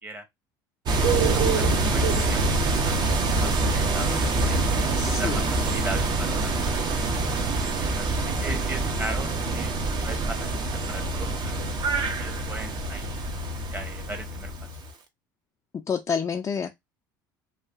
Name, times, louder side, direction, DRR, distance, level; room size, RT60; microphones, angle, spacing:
voice 1, 0.9-7.5 7.8-9.7 10.0-11.7 12.0-13.2 13.7-14.5, right 2 dB, 20° right, 0.9 m, -39 dB
sound 1, 0.9-14.9, right 3 dB, 45° right, 0.7 m, -25 dB
voice 2, 5.0-5.5 15.9-16.7, left 6 dB, 30° left, 0.4 m, -28 dB
2.7 x 2.4 x 2.3 m
hypercardioid pair, 80°, 11 cm